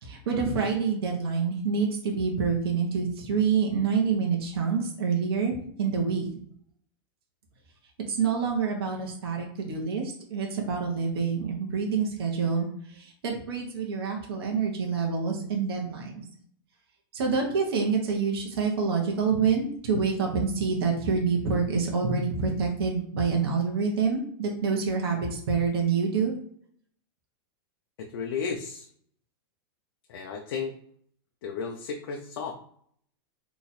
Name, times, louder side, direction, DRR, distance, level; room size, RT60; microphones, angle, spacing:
voice 1, 0.0-6.3 8.1-16.2 17.1-26.4, right 5 dB, 75° right, 1 dB, 1.0 m, -27 dB
voice 2, 28.0-28.9 30.1-30.7 31.4-32.5, left 6 dB, 60° left, 2 dB, 0.5 m, -33 dB
3.0 x 2.4 x 4.1 m, 0.63 s
supercardioid pair, 175°, 13 cm